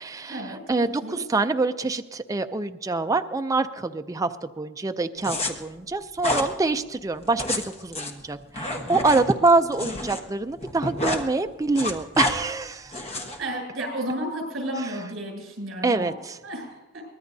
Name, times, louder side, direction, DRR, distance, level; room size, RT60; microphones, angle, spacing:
voice 1, 0.0-13.0 14.8-15.0 15.8-16.4, right 3 dB, 15° right, 7 dB, 0.4 m, -25 dB
sound 1, 5.2-5.5 6.2-6.5 7.2-10.2 10.5-11.2 11.5-12.3 12.9-13.4, left 1 dB, 30° left, 1.2 m, -28 dB
voice 2, 13.4-16.1 16.4-17.0, right 1 dB, 60° right, 1 dB, 7.1 m, -32 dB
23.0 x 19.0 x 2.7 m, 1.2 s
head